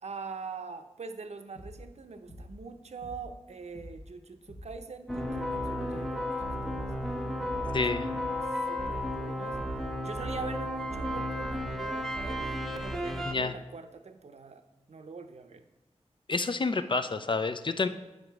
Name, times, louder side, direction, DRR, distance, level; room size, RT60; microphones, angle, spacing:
voice 1, 0.0-6.9 7.5-8.1 8.4-9.6 10.0-15.6 17.8-17.9, right 4 dB, 70° right, 8 dB, 0.6 m, -43 dB
sound 1, 1.6-1.9 2.3-2.7 3.0-3.4 3.8-4.1 4.5-4.9 5.2-5.6 5.9-6.3 6.7-7.1 7.4-7.8 8.1-8.5 8.9-9.2 9.6-10.0, equal, 70° left, 1.2 m, -47 dB
sound 2, 5.1-13.3, left 1 dB, ahead, 0.7 m, -33 dB
voice 2, 7.7-8.1 13.3-13.5 16.3-17.9, left 3 dB, 45° left, 10 dB, 0.4 m, -29 dB
8.1 x 4.9 x 4.6 m, 1.1 s
wide cardioid pair, 90°, 12 cm